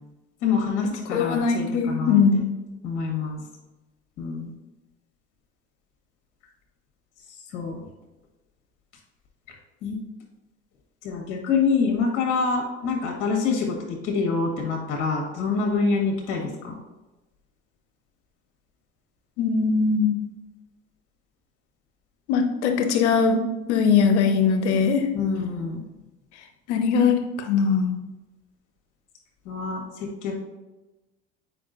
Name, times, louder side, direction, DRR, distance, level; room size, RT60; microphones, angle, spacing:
voice 1, 0.4-2.1 2.8-3.4 4.2-4.5 7.5-7.8 9.8-10.0 11.0-13.7 14.0-16.7 25.1-25.9 29.4-30.4, left 5 dB, 65° left, 0 dB, 1.6 m, -26 dB
voice 2, 1.1-2.5 19.4-20.2 22.3-23.4 23.7-25.1 26.7-28.0, left 5 dB, 80° left, 5 dB, 0.9 m, -21 dB
7.7 x 5.0 x 2.6 m, 1.1 s
hypercardioid pair, 75°, 34 cm